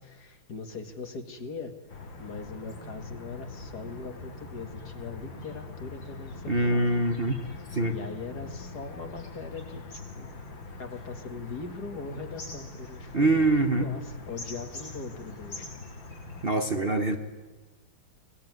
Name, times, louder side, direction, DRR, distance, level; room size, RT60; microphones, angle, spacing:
voice 1, 0.0-1.7 2.2-7.3 7.9-9.8 10.2-10.3 10.8-13.5 13.7-15.8, left 4 dB, 50° left, 7 dB, 2.5 m, -40 dB
sound 1, 1.9-16.5, left 3 dB, 70° left, 3.1 m, -43 dB
sound 2, 4.8-4.9 5.4-5.5 6.0-16.6, left 2 dB, 85° left, 5.7 m, -49 dB
voice 2, 6.5-7.4 7.7-7.9 13.1-13.9 16.4-17.2, right 2 dB, 35° right, 5 dB, 1.2 m, -24 dB
23.5 x 19.0 x 9.5 m, 1.3 s
omnidirectional pair, 2.2 m